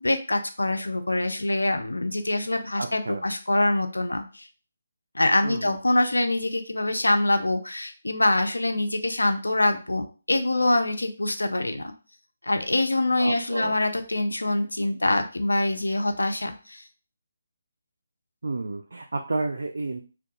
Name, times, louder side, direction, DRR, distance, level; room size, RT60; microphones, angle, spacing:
voice 1, 0.0-4.5 5.1-11.9 12.4-16.8, left 2 dB, 85° left, 7 dB, 0.4 m, -24 dB
voice 2, 2.7-3.2 5.4-5.8 13.2-13.8 18.4-20.0, right 3 dB, 75° right, 3 dB, 0.3 m, -31 dB
2.3 x 2.2 x 2.7 m, 0.34 s
figure-of-eight pair, 150°, 0 cm